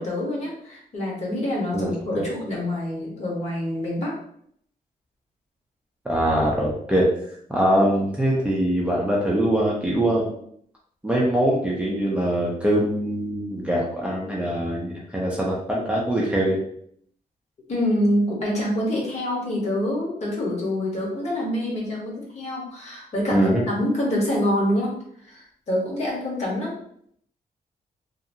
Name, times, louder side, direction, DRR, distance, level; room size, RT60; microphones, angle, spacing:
voice 1, 0.0-4.2 17.7-24.9 25.2-26.8, left 1 dB, 45° left, -3 dB, 1.0 m, -26 dB
voice 2, 1.7-2.3 6.0-7.1 7.5-10.4 11.0-16.6 23.3-23.6, right 1 dB, 10° right, -5 dB, 0.4 m, -23 dB
2.8 x 2.5 x 2.6 m, 0.66 s
wide cardioid pair, 175°, 15 cm